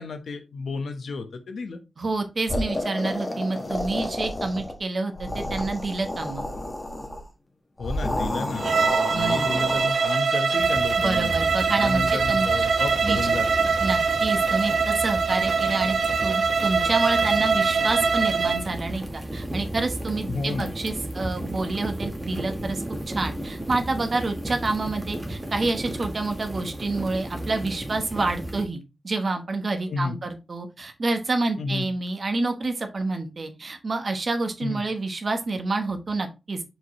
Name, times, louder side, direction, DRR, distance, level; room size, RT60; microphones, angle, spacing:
voice 1, 0.0-1.8 7.8-8.7 9.1-11.4 11.8-13.5 20.3-20.7 29.9-30.2 31.6-31.9 34.6-34.8, left 4 dB, 85° left, 1.0 m, -32 dB
voice 2, 2.0-6.4 9.1-9.8 11.0-12.7 13.0-13.2 13.8-16.0 16.2-36.6, right 3 dB, 45° right, 1.1 m, -28 dB
sound 1, 2.5-4.8 5.1-7.2 7.8-10.1, left 1 dB, 25° left, 1.3 m, -30 dB
Bowed string instrument, 8.6-18.6, right 5 dB, 70° right, 0.7 m, -23 dB
sound 2, 10.6-28.6, right 1 dB, 15° right, 1.3 m, -34 dB
6.2 x 5.0 x 3.1 m
wide cardioid pair, 150°, 0 cm